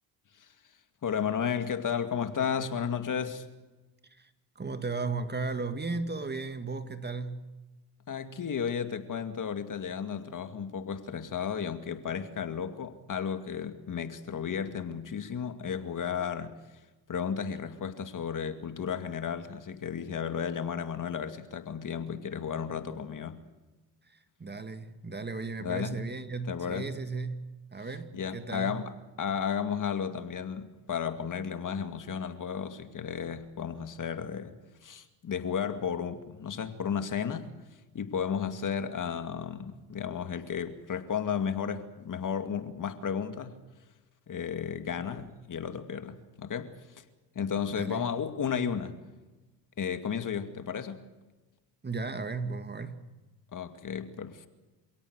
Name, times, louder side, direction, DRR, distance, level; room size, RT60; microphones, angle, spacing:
voice 1, 1.0-3.5 8.1-16.8 17.1-23.4 25.6-26.0 26.5-26.9 28.1-34.6 34.8-37.5 37.9-43.6 44.3-47.0 47.3-48.9 49.8-51.0 53.5-54.5, left 7 dB, 45° left, 2.3 m, -33 dB
voice 2, 4.6-7.5 24.1-28.8 47.7-48.0 51.8-53.0, right 3 dB, 20° right, 2.0 m, -35 dB
28.0 x 17.5 x 8.1 m
cardioid pair, 85°, 45 cm